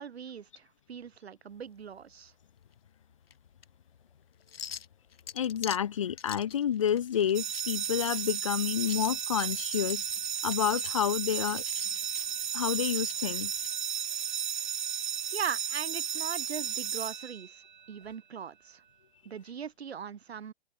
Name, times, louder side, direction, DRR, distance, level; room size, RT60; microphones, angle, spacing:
voice 1, 0.0-2.3 15.3-17.6 17.9-18.8 19.2-20.5, right 7 dB, 65° right, 2.3 m, -39 dB
sound 1, 1.5-13.7, left 7 dB, 60° left, 4.6 m, -47 dB
voice 2, 5.3-10.0 10.4-11.6 12.5-13.7, left 9 dB, 30° left, 1.0 m, -29 dB
sound 2, 7.3-17.8, right 8 dB, 45° right, 0.9 m, -34 dB
open air
hypercardioid pair, 175°, 33 cm